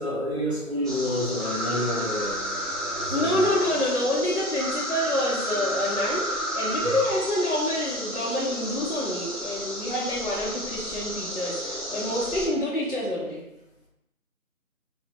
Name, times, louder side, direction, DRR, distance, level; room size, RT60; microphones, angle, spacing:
voice 1, 0.0-3.8 6.8-6.9, left 1 dB, 45° right, -6 dB, 0.6 m, -30 dB
sound 1, 0.8-12.5, equal, ahead, 0.4 m, -32 dB
voice 2, 3.1-13.4, left 1 dB, 55° left, -9 dB, 0.6 m, -27 dB
2.5 x 2.1 x 2.8 m, 0.91 s
figure-of-eight pair, 180°, 45 cm